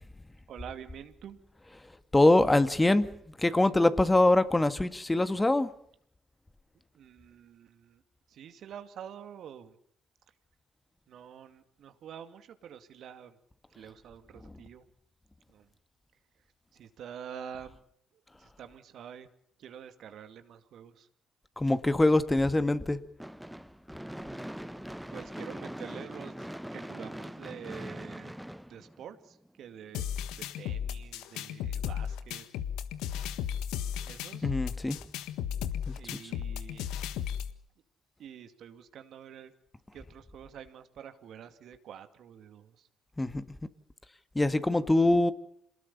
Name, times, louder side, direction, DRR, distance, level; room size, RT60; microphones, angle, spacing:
voice 1, 0.5-1.4 6.9-8.0 8.3-9.8 11.1-13.4 13.7-14.8 15.5-15.7 16.7-17.8 18.1-19.3 19.6-21.1 24.2-28.4 28.7-30.0 30.3-32.4 34.0-34.5 36.0-37.0 38.2-39.5 39.9-42.9, right 8 dB, 65° right, 9 dB, 2.3 m, -47 dB
voice 2, 2.1-5.7 21.6-23.0 34.4-35.0 35.9-36.0 43.2-43.6 44.4-45.3, left 2 dB, 15° left, 12 dB, 1.9 m, -24 dB
Gunshot gunfire / Fireworks, 23.2-29.5, equal, 5° right, 1.0 m, -42 dB
sound 1, 29.9-37.5, left 9 dB, 75° left, 1.5 m, -35 dB
27.5 x 20.0 x 6.9 m, 0.65 s
hypercardioid pair, 50°, 0 cm